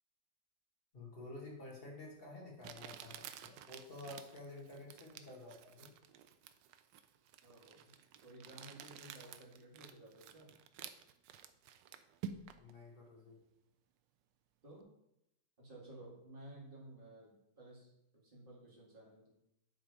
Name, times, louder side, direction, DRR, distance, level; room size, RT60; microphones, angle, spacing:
voice 1, 0.9-5.9 12.6-13.4, left 2 dB, 35° left, -2 dB, 2.0 m, -51 dB
Crumpling crinkling, 1.7-1.8 2.6-12.7, right 8 dB, 85° right, 1.2 m, -52 dB
voice 2, 7.4-7.9 8.2-10.5 14.6-14.9 15.6-19.3, right 1 dB, 30° right, -3 dB, 2.2 m, -55 dB
9.5 x 3.8 x 4.7 m, 0.82 s
omnidirectional pair, 1.9 m